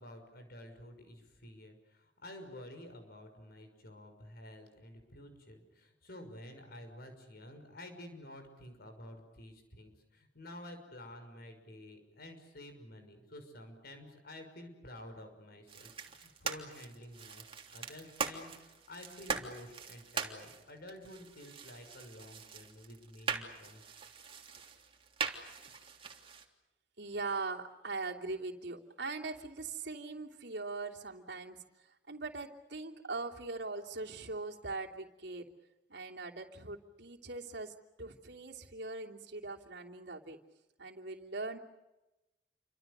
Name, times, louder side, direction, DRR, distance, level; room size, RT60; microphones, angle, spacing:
voice 1, 0.0-17.5 17.7-23.8, left 1 dB, 60° left, 6 dB, 6.1 m, -51 dB
sound 1, 15.7-26.5, right 5 dB, 30° right, 3.1 m, -42 dB
voice 2, 27.0-35.5 35.9-40.4 40.8-41.6, right 3 dB, 70° right, 0 dB, 3.0 m, -41 dB
29.0 x 25.5 x 6.9 m, 0.99 s
head